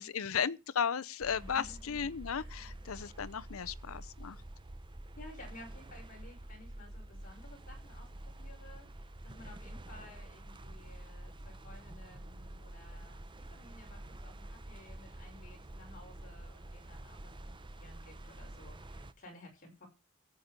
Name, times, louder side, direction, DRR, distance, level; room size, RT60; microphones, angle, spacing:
voice 1, 0.0-4.4, left 7 dB, 75° left, 0.6 m, -35 dB
sound 1, 1.2-19.1, right 1 dB, 25° right, 0.7 m, -48 dB
voice 2, 1.3-2.1 2.4-2.8 5.1-19.9, left 2 dB, 40° left, 5.7 m, -55 dB
14.0 x 7.2 x 5.2 m
head